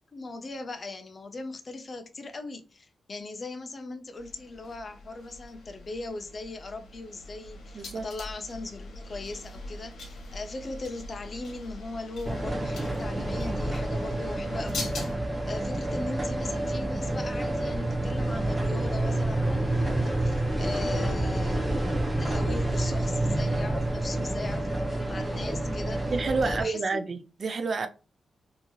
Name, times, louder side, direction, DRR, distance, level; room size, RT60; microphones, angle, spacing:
voice 1, 0.1-14.9 15.5-26.0 26.4-27.0, left 3 dB, 35° left, 0.5 m, -39 dB
sound 1, 4.2-15.1, left 2 dB, 85° left, 1.1 m, -42 dB
voice 2, 7.7-8.0 26.1-27.9, right 4 dB, 45° right, 0.4 m, -29 dB
sound 2, 12.3-26.6, right 1 dB, 10° right, 0.7 m, -28 dB
2.9 x 2.7 x 2.3 m
wide cardioid pair, 140°, 0 cm